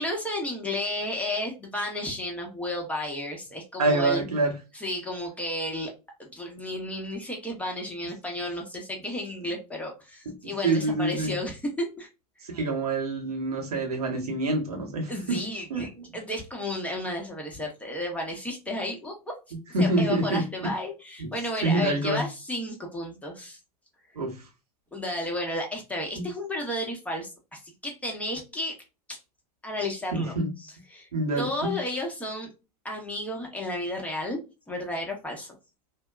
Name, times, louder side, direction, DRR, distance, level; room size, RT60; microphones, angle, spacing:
voice 1, 0.0-4.2 4.7-5.9 6.2-12.1 15.1-19.3 19.8-23.6 24.9-28.7 29.1-29.2 29.6-31.1 31.4-32.5 32.8-34.4 34.7-35.5, left 1 dB, 5° left, 1.0 m, -33 dB
voice 2, 3.8-4.5 10.4-11.3 12.5-15.8 19.7-20.7 21.6-22.2 24.2-24.3 26.2-26.3 30.1-30.5 31.1-31.7, right 2 dB, 85° right, 1.0 m, -26 dB
2.7 x 2.2 x 2.3 m
hypercardioid pair, 90°, 19 cm